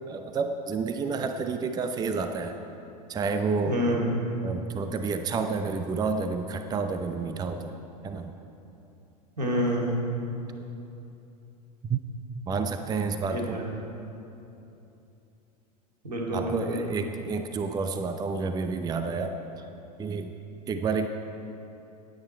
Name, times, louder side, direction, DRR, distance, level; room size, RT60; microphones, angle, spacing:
voice 1, 0.1-2.6 3.1-3.8 4.4-7.8 8.0-8.3 11.9-12.0 12.5-13.6 16.3-19.4 20.0-20.3 20.7-21.1, right 4 dB, 20° right, 7 dB, 0.6 m, -29 dB
voice 2, 3.6-4.2 9.4-10.1 13.2-13.8 16.0-16.9, equal, 80° right, -1 dB, 2.3 m, -28 dB
16.0 x 9.2 x 4.5 m, 2.9 s
figure-of-eight pair, 85°, 21 cm